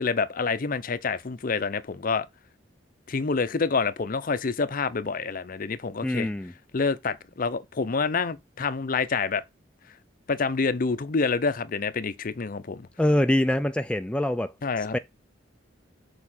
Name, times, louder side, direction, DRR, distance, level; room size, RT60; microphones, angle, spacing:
voice 1, 0.0-2.3 3.1-6.3 6.7-9.4 10.3-12.9 14.6-15.0, left 4 dB, 45° left, 0.6 m, -27 dB
voice 2, 6.0-6.5 13.0-14.5 14.9-15.0, left 1 dB, 5° left, 0.3 m, -24 dB
6.8 x 4.7 x 4.3 m
head